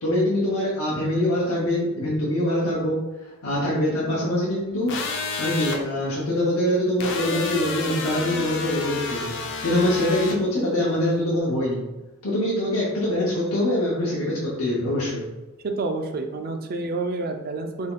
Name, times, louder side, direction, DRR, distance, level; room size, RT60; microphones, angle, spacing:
voice 1, 0.0-3.0 3.4-4.9 5.4-9.3 9.6-11.9 12.2-15.2, left 1 dB, 85° left, -6 dB, 0.8 m, -24 dB
sound 1, 4.9-5.8 7.0-10.4, left 3 dB, 60° left, 0.5 m, -30 dB
voice 2, 15.6-17.9, right 3 dB, 45° right, 5 dB, 0.4 m, -28 dB
3.5 x 2.3 x 3.6 m, 1.1 s
head